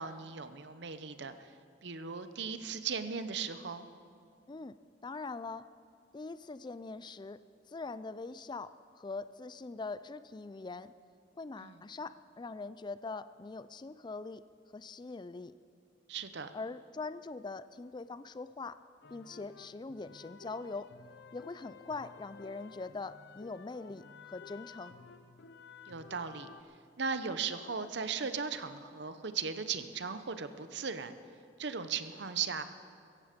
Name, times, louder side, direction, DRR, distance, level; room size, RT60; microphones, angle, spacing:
voice 1, 0.0-1.5 1.8-3.9 11.6-11.8 16.1-16.5 25.9-26.5 27.0-31.1 31.6-32.6, right 6 dB, 65° right, 11 dB, 0.8 m, -37 dB
voice 2, 5.0-5.7 6.1-7.4 7.7-10.9 11.4-14.5 14.7-15.5 16.5-18.8 19.1-20.9 21.3-24.9, left 3 dB, 25° left, 14 dB, 0.4 m, -42 dB
sound 1, 19.0-26.6, left 5 dB, 60° left, 0.7 m, -54 dB
16.5 x 15.0 x 5.2 m, 2.3 s
head